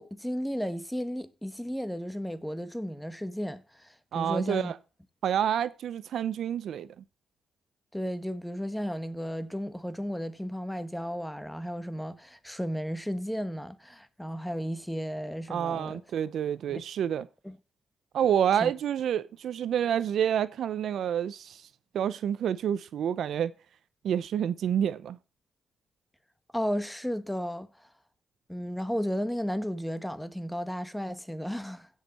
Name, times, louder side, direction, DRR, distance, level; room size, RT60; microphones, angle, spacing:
voice 1, 0.0-4.7 7.9-16.0 16.7-16.8 17.4-17.6 18.6-18.7 26.5-27.7 28.5-31.9, equal, 5° left, 1.1 m, -34 dB
voice 2, 4.1-4.8 5.2-6.9 15.5-17.3 18.1-21.6 21.9-23.5 24.0-25.2, right 9 dB, 70° right, 0.6 m, -28 dB
16.0 x 6.5 x 4.2 m
cardioid pair, 80°, 0 cm